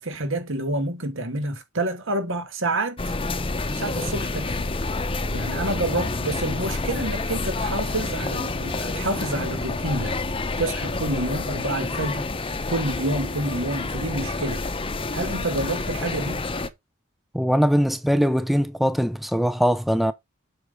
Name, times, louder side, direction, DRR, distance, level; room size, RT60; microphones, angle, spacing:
voice 1, 0.0-3.1 3.7-4.7 5.3-10.2 10.6-12.3 12.7-14.7 15.1-16.4, right 2 dB, 65° right, 2.5 m, -28 dB
sound 1, 3.0-16.7, left 3 dB, 25° left, 0.8 m, -28 dB
voice 2, 17.3-20.1, equal, ahead, 0.5 m, -21 dB
8.1 x 6.2 x 3.6 m
head